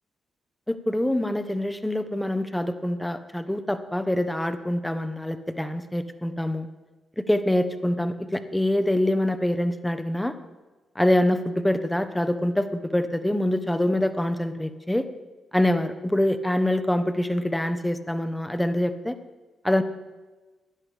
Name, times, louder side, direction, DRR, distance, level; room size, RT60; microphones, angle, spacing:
voice 1, 0.7-6.7 7.2-10.4 10.9-15.1 15.5-19.2 19.6-19.8, left 1 dB, 10° left, 10 dB, 1.1 m, -25 dB
16.5 x 10.5 x 3.5 m, 1.2 s
hypercardioid pair, 45°, 0 cm